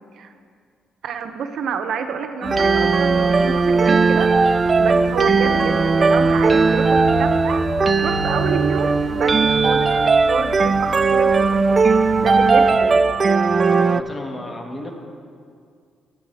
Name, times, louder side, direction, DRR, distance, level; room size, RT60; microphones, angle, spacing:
voice 1, 1.0-13.1, right 6 dB, 70° right, 7 dB, 0.7 m, -29 dB
sound 1, 2.4-12.8, left 3 dB, 80° left, 3.5 m, -34 dB
sound 2, 2.4-14.0, right 4 dB, 35° right, 0.3 m, -17 dB
voice 2, 13.7-14.9, left 1 dB, 20° left, 2 dB, 1.7 m, -33 dB
20.5 x 8.2 x 3.4 m, 2.2 s
cardioid pair, 90°, 0 cm